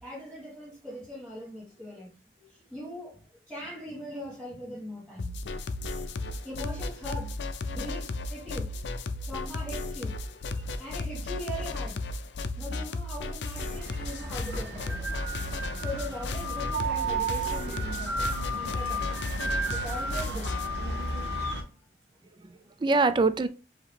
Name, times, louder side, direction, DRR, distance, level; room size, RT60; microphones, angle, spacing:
voice 1, 0.0-5.4 6.4-7.4 7.7-9.0 9.2-12.0 12.6-15.1 15.7-19.2 19.7-20.6, equal, 5° right, 1.6 m, -41 dB
sound 1, 5.2-20.7, left 2 dB, 80° left, 0.5 m, -35 dB
sound 2, 13.5-21.6, right 2 dB, 75° right, 1.3 m, -33 dB
voice 2, 19.4-19.8 22.4-23.5, right 3 dB, 25° right, 0.3 m, -26 dB
4.9 x 2.8 x 3.3 m
head